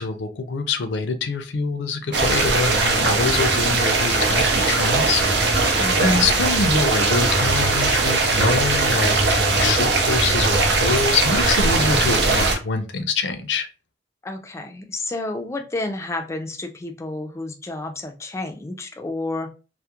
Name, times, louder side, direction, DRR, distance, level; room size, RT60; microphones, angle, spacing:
voice 1, 0.0-13.7, left 4 dB, 85° left, 8 dB, 0.4 m, -25 dB
sound 1, 2.1-12.6, right 3 dB, 75° right, 0.6 m, -20 dB
voice 2, 5.8-6.3 14.2-19.5, left 2 dB, 15° left, 5 dB, 0.3 m, -30 dB
2.3 x 2.0 x 2.8 m, 0.32 s
head